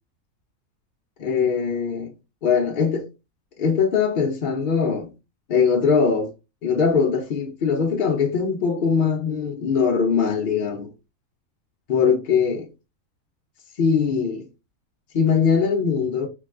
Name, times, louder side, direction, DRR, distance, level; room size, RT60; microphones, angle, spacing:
voice 1, 1.2-2.1 2.4-3.1 3.6-5.1 5.5-6.3 6.6-10.9 11.9-12.7 13.8-14.4 15.1-16.3, left 6 dB, 60° left, 0.5 m, -21 dB
3.3 x 2.9 x 2.4 m
omnidirectional pair, 1.5 m